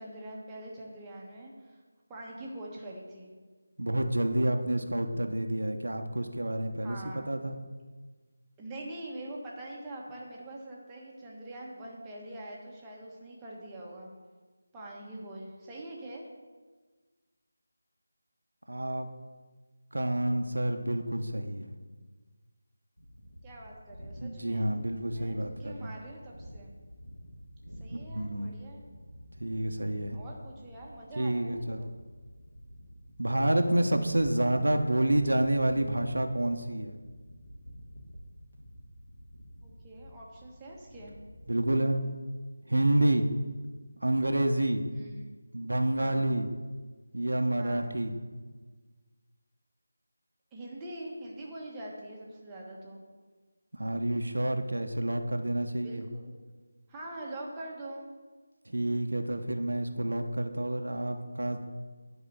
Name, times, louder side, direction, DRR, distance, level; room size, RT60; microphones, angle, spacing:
voice 1, 0.0-1.8 2.1-3.3 6.8-7.3 8.6-14.1 14.7-16.3 23.4-24.7 25.1-26.7 27.8-28.9 30.1-31.9 39.6-41.1 44.9-45.3 46.0-46.3 47.6-48.0 50.5-53.0 55.8-56.3 56.9-58.1, right 1 dB, 10° right, -4 dB, 1.4 m, -44 dB
voice 2, 3.8-7.5 18.7-19.1 19.9-21.7 24.2-25.9 27.9-28.5 29.4-30.2 31.2-31.9 33.2-37.0 41.5-42.0 42.7-43.3 44.0-44.8 45.5-46.5 47.1-48.1 53.7-56.1 58.7-61.6, right 1 dB, 75° right, 6 dB, 1.0 m, -29 dB
sound 1, 23.0-41.6, equal, 85° left, 2.6 m, -49 dB
9.9 x 4.9 x 6.8 m, 1.4 s
figure-of-eight pair, 160°, 0 cm